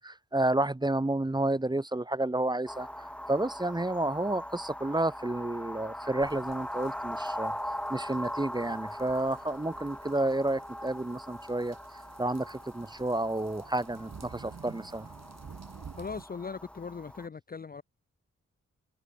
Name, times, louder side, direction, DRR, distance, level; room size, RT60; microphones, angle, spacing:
voice 1, 0.0-2.9 3.3-7.5 7.9-11.8 12.2-15.1, right 2 dB, 15° right, 1.2 m, -30 dB
sound 1, 2.7-17.3, equal, 5° left, 2.2 m, -41 dB
sound 2, 6.2-16.2, right 6 dB, 60° right, 2.9 m, -52 dB
voice 2, 16.0-17.8, left 5 dB, 30° left, 0.6 m, -39 dB
supercardioid pair, 40°, 30 cm